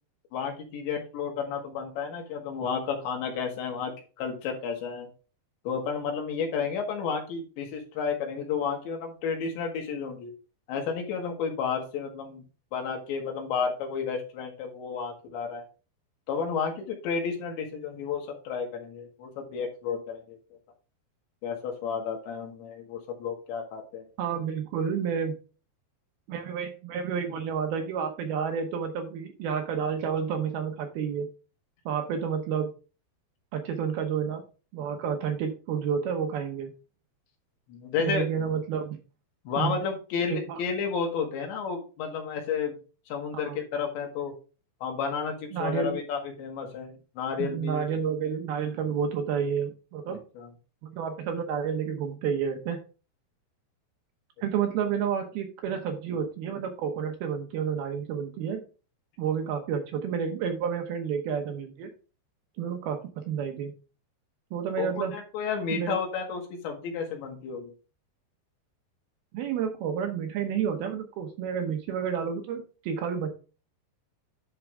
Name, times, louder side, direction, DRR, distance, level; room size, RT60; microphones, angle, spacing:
voice 1, 0.3-5.1 5.7-10.3 10.7-12.4 12.7-15.7 16.3-20.4 21.4-24.1 37.7-38.3 39.5-42.8 43.1-44.3 44.8-47.9 50.4-50.5 64.8-67.7, left 6 dB, 80° left, 2 dB, 4.1 m, -32 dB
voice 2, 24.2-25.4 26.3-31.3 31.9-32.7 33.5-34.4 34.7-36.7 38.0-39.0 39.6-39.8 40.3-40.6 43.4-43.6 45.5-46.0 47.4-50.2 50.8-52.8 54.4-58.6 59.2-61.9 62.6-63.7 64.5-65.2 65.7-66.0 69.3-73.3, right 7 dB, 75° right, 5 dB, 2.5 m, -30 dB
10.5 x 4.8 x 3.5 m, 0.34 s
omnidirectional pair, 5.2 m